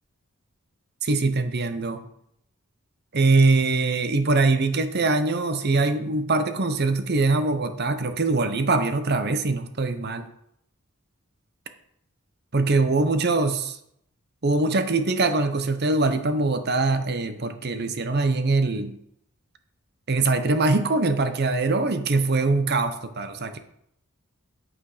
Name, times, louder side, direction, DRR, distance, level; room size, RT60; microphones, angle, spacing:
voice 1, 1.0-2.0 3.1-10.3 12.5-13.8 14.4-18.9 20.1-23.6, right 3 dB, 50° right, 9 dB, 0.9 m, -23 dB
8.4 x 8.4 x 5.0 m, 0.73 s
head